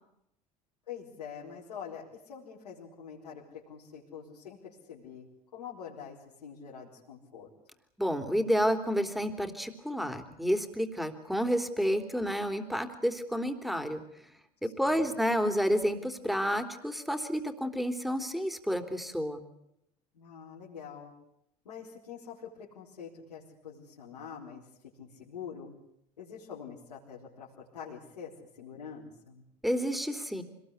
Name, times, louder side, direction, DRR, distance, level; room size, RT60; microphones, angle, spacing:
voice 1, 0.9-7.5 14.6-15.1 20.1-21.1 21.6-25.7 26.2-29.4, left 7 dB, 85° left, -6 dB, 4.8 m, -45 dB
voice 2, 8.0-14.0 14.6-19.4 29.6-30.4, equal, ahead, 6 dB, 3.5 m, -30 dB
25.5 x 20.0 x 8.2 m, 0.79 s
hypercardioid pair, 70°, 20 cm